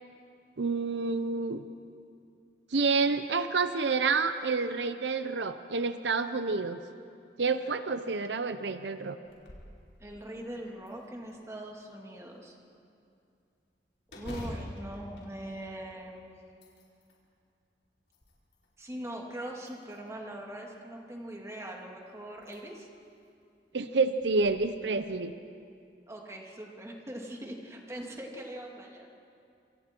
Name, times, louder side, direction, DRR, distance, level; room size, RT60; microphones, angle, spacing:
voice 1, 0.6-1.6 2.7-6.8 7.4-9.2 23.7-25.3, right 4 dB, 80° right, 10 dB, 0.8 m, -28 dB
sound 1, 9.2-9.8 10.2-10.3 10.9-11.7 14.1-16.1 16.5-17.2 17.8-18.7 19.6-20.3 21.7-21.8 22.4-22.6 23.0-23.1 24.2-24.5, left 1 dB, 80° left, 4.7 m, -45 dB
voice 2, 10.0-12.6 14.1-16.4 18.8-22.9 26.1-29.1, right 1 dB, 15° right, 0 dB, 2.4 m, -41 dB
27.5 x 26.0 x 4.5 m, 2.5 s
head